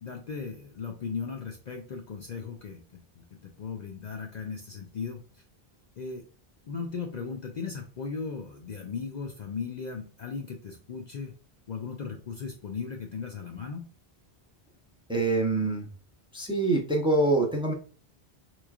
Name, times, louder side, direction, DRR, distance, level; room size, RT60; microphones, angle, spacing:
voice 1, 0.0-5.2 6.0-6.2 6.7-11.3 11.7-13.9, left 5 dB, 55° left, 2 dB, 0.5 m, -37 dB
voice 2, 15.1-15.9 16.3-17.7, right 2 dB, 5° right, 1 dB, 0.6 m, -25 dB
4.4 x 3.1 x 2.4 m, 0.39 s
omnidirectional pair, 1.0 m